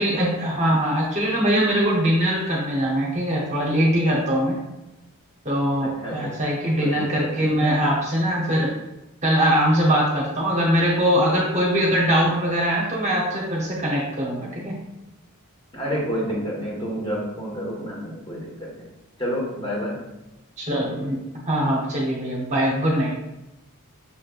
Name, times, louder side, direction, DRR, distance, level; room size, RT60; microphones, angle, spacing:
voice 1, 0.0-4.6 5.4-8.7 9.2-14.8 20.6-21.2 21.5-23.1, equal, 30° right, -2 dB, 0.8 m, -22 dB
voice 2, 5.8-6.3 6.8-7.5 15.7-18.8 19.2-20.0, equal, 20° left, -4 dB, 1.3 m, -29 dB
7.0 x 3.2 x 2.4 m, 0.95 s
head